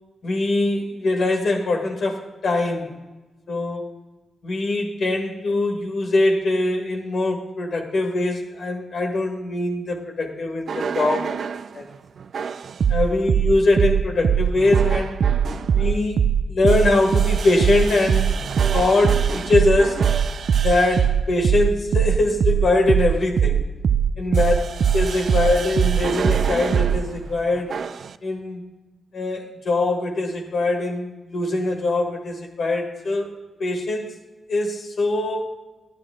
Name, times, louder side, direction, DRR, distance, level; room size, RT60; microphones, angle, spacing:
voice 1, 0.2-2.9 3.5-3.9 4.4-11.4 11.7-11.9 12.9-15.2 15.7-16.2 16.5-18.4 18.7-20.1 20.6-23.6 24.2-24.5 24.9-27.7 28.2-28.6 29.1-33.3 33.6-34.1 34.5-35.4, left 2 dB, 65° left, 2 dB, 1.6 m, -22 dB
sound 1, 10.7-11.7 12.3-27.0 27.7-28.1, right 7 dB, 65° right, 0.3 m, -21 dB
11.0 x 9.8 x 3.6 m, 1.2 s
cardioid pair, 75°, 0 cm